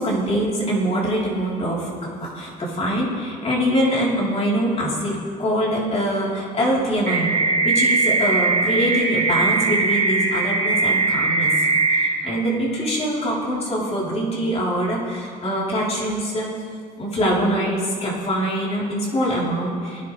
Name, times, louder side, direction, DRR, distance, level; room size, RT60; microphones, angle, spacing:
voice 1, 0.0-1.9 2.3-7.4 7.6-16.5 17.0-20.1, equal, 40° left, -5 dB, 3.9 m, -23 dB
sound 1, 7.1-12.1, right 3 dB, 50° right, 3.9 m, -20 dB
19.5 x 11.0 x 3.4 m, 2.2 s
cardioid pair, 110°, 17 cm